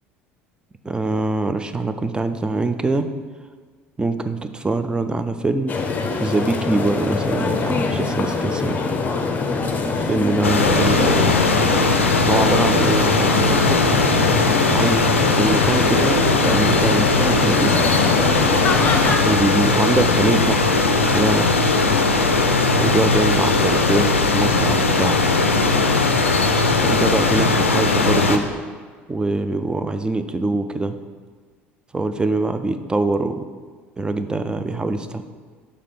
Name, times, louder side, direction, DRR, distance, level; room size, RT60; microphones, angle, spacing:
voice 1, 0.8-3.1 4.0-5.8 6.2-8.8 10.0-11.4 12.3-13.8 14.7-17.8 19.3-21.6 22.7-25.2 26.8-28.5 29.1-31.0 31.9-33.5 34.0-35.0, right 2 dB, 15° right, 10 dB, 0.4 m, -23 dB
sound 1, 5.7-19.2, left 4 dB, 25° left, 0.6 m, -24 dB
sound 2, 10.4-28.4, left 3 dB, 80° left, 0.4 m, -18 dB
6.5 x 3.2 x 5.5 m, 1.5 s
figure-of-eight pair, 65°, 7 cm